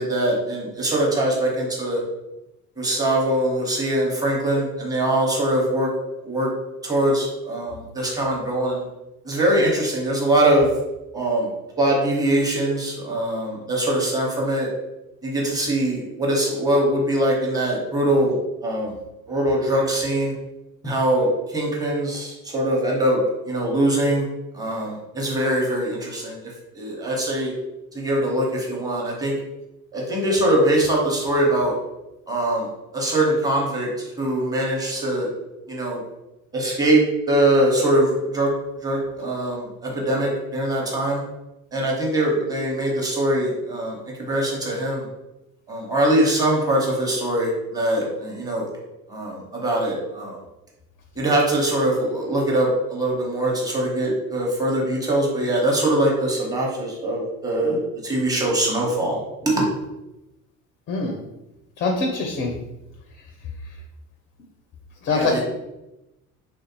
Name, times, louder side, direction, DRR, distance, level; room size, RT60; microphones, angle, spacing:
voice 1, 0.0-2.0 2.8-5.9 6.2-6.5 6.8-8.8 9.2-10.7 11.1-11.5 11.8-14.7 15.2-18.4 18.6-18.9 19.3-20.3 20.8-24.3 24.5-26.4 26.7-27.5 27.9-29.3 29.9-31.7 32.3-32.7 32.9-33.9 34.2-35.3 35.7-36.0 36.5-37.0 37.3-38.5 38.8-41.2 41.7-44.0 44.3-45.0 45.7-48.7 49.1-50.4 51.2-59.7 65.1-65.4, right 1 dB, 10° right, -3 dB, 1.0 m, -22 dB
voice 2, 61.8-62.5 65.0-65.4, left 3 dB, 30° left, 2 dB, 0.5 m, -23 dB
3.2 x 2.5 x 2.9 m, 0.95 s
figure-of-eight pair, 60°, 43 cm